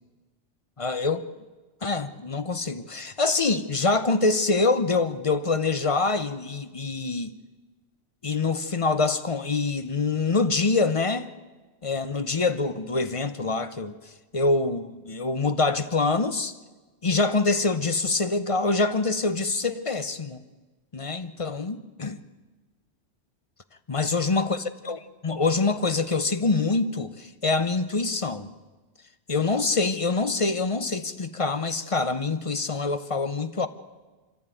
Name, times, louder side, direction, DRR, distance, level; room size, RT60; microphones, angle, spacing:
voice 1, 0.8-1.3 1.8-7.4 8.2-11.3 11.8-14.0 14.3-16.5 17.0-20.4 20.9-22.2 23.9-28.5 29.3-33.7, left 3 dB, 30° left, 0.7 m, -25 dB
24.5 x 14.5 x 9.1 m
omnidirectional pair, 1.2 m